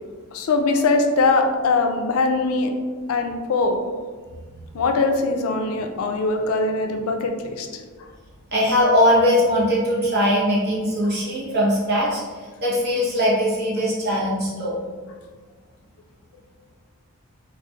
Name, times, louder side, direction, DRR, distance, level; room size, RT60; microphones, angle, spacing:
voice 1, 0.3-2.7 3.1-3.9 4.7-8.1 11.0-11.2, left 3 dB, 80° left, 5 dB, 0.4 m, -22 dB
voice 2, 8.5-14.8, equal, 50° right, -6 dB, 0.9 m, -20 dB
4.2 x 2.4 x 2.3 m, 1.5 s
head